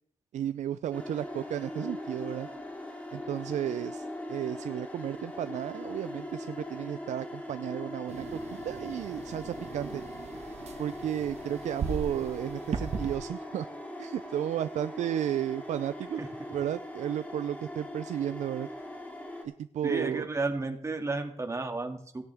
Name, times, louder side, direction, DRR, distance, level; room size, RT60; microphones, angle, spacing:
voice 1, 0.3-2.5 3.1-10.0 10.8-13.7 14.0-16.2 16.5-18.7 19.6-20.3, right 10 dB, 90° right, 13 dB, 0.4 m, -33 dB
sound 1, 0.9-19.4, left 1 dB, 10° left, 2.9 m, -41 dB
sound 2, 8.1-13.2, right 5 dB, 65° right, 1.6 m, -38 dB
voice 2, 19.8-22.2, right 3 dB, 25° right, 4 dB, 2.0 m, -32 dB
17.0 x 10.5 x 3.5 m, 0.66 s
wide cardioid pair, 110°, 12 cm